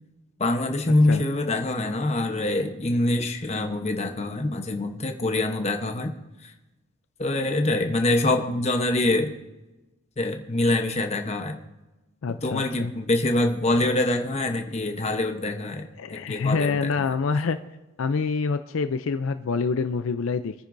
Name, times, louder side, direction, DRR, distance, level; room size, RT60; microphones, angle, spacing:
voice 1, 0.4-6.1 6.4-6.5 7.2-9.3 10.2-11.6 12.3-16.9, left 2 dB, 30° left, 5 dB, 0.9 m, -25 dB
voice 2, 12.2-12.9 16.0-17.6 18.0-20.5, left 4 dB, 70° left, 10 dB, 0.4 m, -26 dB
26.5 x 9.6 x 2.6 m, 1.1 s
head